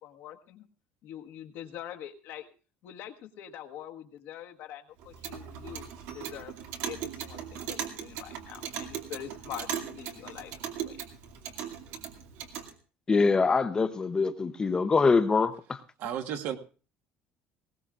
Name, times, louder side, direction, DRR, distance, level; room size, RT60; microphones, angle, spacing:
voice 1, 0.0-0.6 1.0-2.5 2.8-6.5 6.8-11.0, left 10 dB, 65° left, 1.4 m, -44 dB
Clock, 5.0-12.7, right 9 dB, 90° right, 2.4 m, -39 dB
voice 2, 13.1-15.8, left 4 dB, 20° left, 0.7 m, -24 dB
voice 3, 16.0-16.6, right 9 dB, 65° right, 1.4 m, -33 dB
19.5 x 18.0 x 2.5 m
cardioid pair, 155°, 4 cm